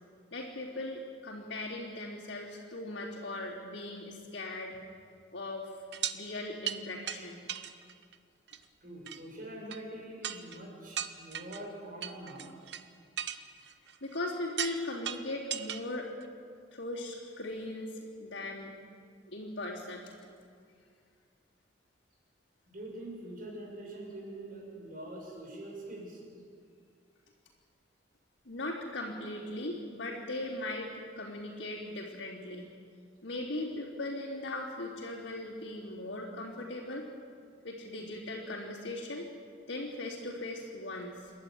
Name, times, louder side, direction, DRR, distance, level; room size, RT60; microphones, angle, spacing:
voice 1, 0.3-4.8 5.3-5.7 6.1-7.4 14.0-16.1 16.7-18.7 19.3-20.1 28.5-32.7 33.2-37.0 37.6-39.3 39.7-41.3, left 2 dB, 75° left, -8 dB, 3.6 m, -39 dB
sound 1, 5.9-6.2 6.6-6.8 7.1-7.2 7.5-8.1 8.5-8.6 9.1-9.2 9.7-9.8 10.2-10.6 11.0-11.6 12.0-12.8 13.2-14.2 14.6-14.8 15.0-15.8 16.2-16.3, right 10 dB, 65° right, 1.0 m, -37 dB
voice 2, 8.8-12.5 22.7-26.2, right 1 dB, 45° right, -2 dB, 6.7 m, -44 dB
28.5 x 12.0 x 9.6 m, 2.3 s
head